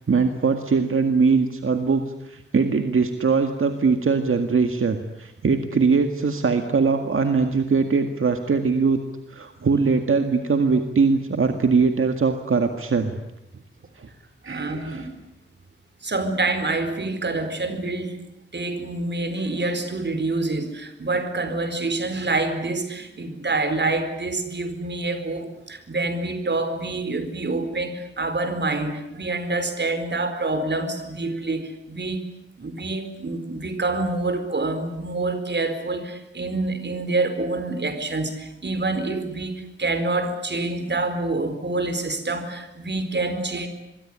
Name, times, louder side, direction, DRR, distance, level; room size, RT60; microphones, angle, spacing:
voice 1, 0.0-9.0 9.3-13.1 14.0-14.1 14.4-15.1, right 4 dB, 85° right, 6 dB, 1.9 m, -21 dB
voice 2, 14.4-15.1 16.0-18.2 18.5-32.2 32.6-43.7, right 2 dB, 60° right, 9 dB, 4.4 m, -27 dB
26.0 x 22.5 x 9.9 m, 0.85 s
wide cardioid pair, 105°, 21 cm